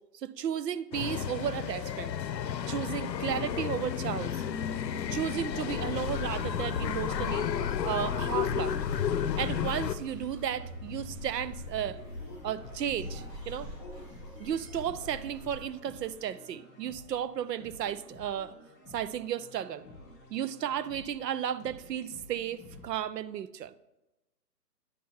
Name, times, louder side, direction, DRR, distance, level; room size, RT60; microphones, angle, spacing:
voice 1, 0.1-2.1 2.7-4.5 5.1-7.5 7.8-8.7 9.4-12.0 12.4-13.7 14.4-18.5 18.9-19.9 20.3-23.7, right 9 dB, 75° right, 0.6 m, -34 dB
sound 1, 0.9-10.0, left 8 dB, 90° left, 0.7 m, -32 dB
sound 2, 6.2-15.6, left 1 dB, 20° right, 1.4 m, -43 dB
sound 3, 6.8-22.9, left 1 dB, 15° left, 1.1 m, -52 dB
10.0 x 3.8 x 4.2 m
hypercardioid pair, 170°, 49 cm